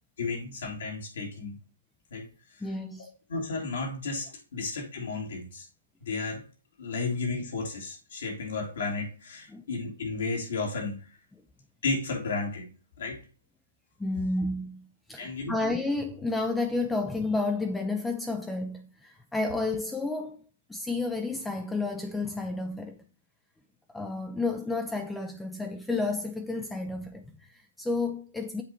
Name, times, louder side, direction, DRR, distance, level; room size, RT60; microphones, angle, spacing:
voice 1, 0.2-1.6 2.1-2.2 3.3-5.7 6.0-6.4 6.8-10.9 11.8-12.7 13.0-13.2 15.2-15.5, left 3 dB, 70° left, 2.6 m, -33 dB
voice 2, 2.6-3.1 9.5-9.6 14.0-20.4 20.7-23.0 23.9-28.6, left 3 dB, 5° left, 0.4 m, -31 dB
7.4 x 4.3 x 4.4 m
hypercardioid pair, 155°, 0 cm